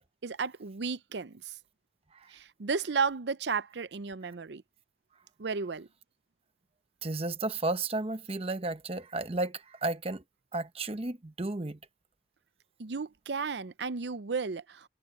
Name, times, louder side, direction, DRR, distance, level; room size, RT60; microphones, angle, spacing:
voice 1, 0.2-1.6 2.3-4.6 5.4-5.9 12.8-14.9, right 5 dB, 70° right, 0.6 m, -33 dB
voice 2, 7.0-10.2 10.5-11.8, right 2 dB, 30° right, 0.9 m, -33 dB
head